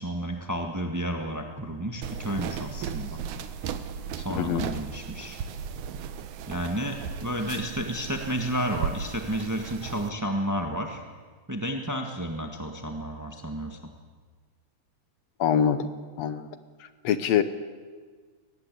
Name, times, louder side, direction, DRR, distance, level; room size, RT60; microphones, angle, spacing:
voice 1, 0.0-3.2 4.2-5.4 6.5-11.0 11.5-13.9, equal, 15° right, 4 dB, 0.6 m, -31 dB
sound 1, 2.0-10.1, right 7 dB, 80° right, 2.5 m, -36 dB
voice 2, 4.4-4.7 15.4-15.9 16.2-16.5 17.0-17.4, left 8 dB, 70° left, 12 dB, 2.0 m, -24 dB
22.5 x 20.0 x 8.3 m, 1.5 s
omnidirectional pair, 3.3 m